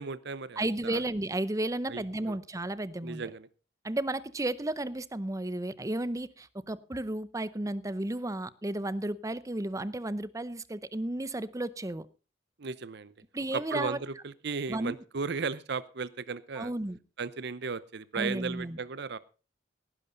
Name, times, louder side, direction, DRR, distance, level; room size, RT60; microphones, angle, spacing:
voice 1, 0.0-1.0 1.9-2.4 3.0-3.5 12.6-13.1 13.5-16.7 17.2-19.2, right 4 dB, 65° right, 17 dB, 0.7 m, -36 dB
voice 2, 0.6-3.2 3.8-12.1 13.3-14.0 14.7-14.9 16.6-17.0 18.1-18.8, right 1 dB, 15° right, 17 dB, 0.7 m, -33 dB
17.5 x 11.0 x 3.9 m, 0.34 s
head